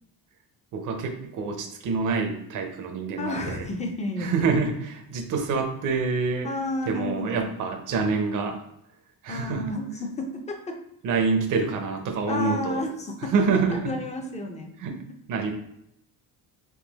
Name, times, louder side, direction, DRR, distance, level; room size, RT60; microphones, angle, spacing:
voice 1, 0.7-3.7 4.2-6.5 6.8-8.6 9.2-9.7 11.0-12.8 13.2-14.0 14.8-15.0 15.3-15.5, right 4 dB, 50° right, 4 dB, 0.7 m, -26 dB
voice 2, 3.2-4.3 6.4-7.5 9.3-10.8 12.3-13.3 13.7-15.0, left 2 dB, 20° left, 3 dB, 0.6 m, -31 dB
3.8 x 2.6 x 3.9 m, 0.79 s
cardioid pair, 150°, 39 cm